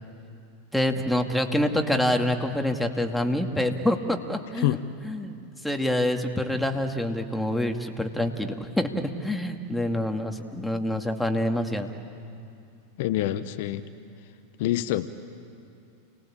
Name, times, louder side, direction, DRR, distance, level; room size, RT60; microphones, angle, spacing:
voice 1, 0.7-4.8 5.0-5.4 5.6-11.9, left 1 dB, 5° left, 4 dB, 2.3 m, -26 dB
voice 2, 13.0-13.8 14.6-15.1, left 14 dB, 60° left, 11 dB, 1.0 m, -26 dB
29.5 x 20.0 x 8.8 m, 2.6 s
hypercardioid pair, 95°, 0 cm